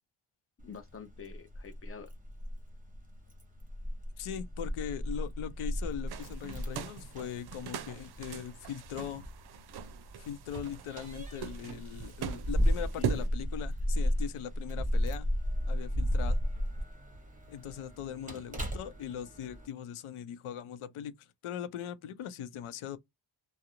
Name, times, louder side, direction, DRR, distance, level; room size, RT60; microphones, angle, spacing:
voice 1, 0.6-2.1 12.8-13.2 18.1-18.4, left 6 dB, 30° left, 0.5 m, -48 dB
Keys jangling, 0.6-19.7, equal, 15° right, 0.7 m, -34 dB
voice 2, 4.2-9.3 10.2-15.3 15.7-16.4 17.5-23.0, left 9 dB, 80° left, 0.6 m, -40 dB
sound 1, 6.1-13.3, right 6 dB, 55° right, 0.5 m, -40 dB
2.4 x 2.0 x 2.8 m
wide cardioid pair, 125°, 49 cm